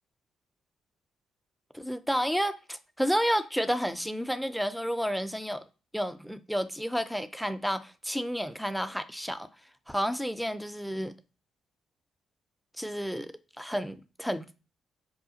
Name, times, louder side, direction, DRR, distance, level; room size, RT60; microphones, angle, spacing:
voice 1, 1.7-5.6 5.9-9.5 9.9-11.1 12.8-14.5, equal, ahead, 0.4 m, -31 dB
4.9 x 2.2 x 2.7 m
hypercardioid pair, 45°, 0 cm